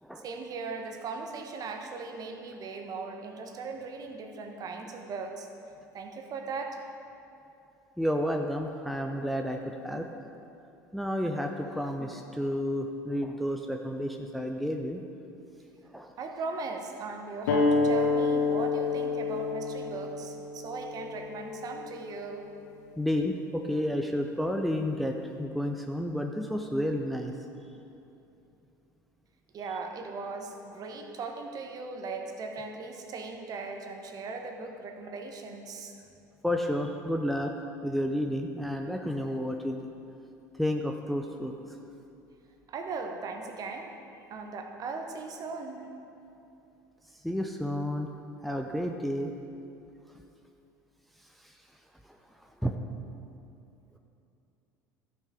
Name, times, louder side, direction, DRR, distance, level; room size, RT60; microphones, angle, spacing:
voice 1, 0.1-5.5 5.9-7.0 16.2-22.5 29.5-36.0 42.7-44.0 44.3-45.9, right 4 dB, 40° right, 4 dB, 1.2 m, -38 dB
voice 2, 8.0-10.1 10.9-15.0 15.8-16.1 23.0-27.3 36.4-37.5 37.8-39.8 40.6-41.5 47.2-48.1 48.4-49.3 51.4-51.6 52.0-52.8, equal, ahead, 3 dB, 0.6 m, -31 dB
sound 1, 17.5-22.6, left 4 dB, 65° left, 0.9 m, -29 dB
14.5 x 6.7 x 4.8 m, 2.8 s
figure-of-eight pair, 65°, 10 cm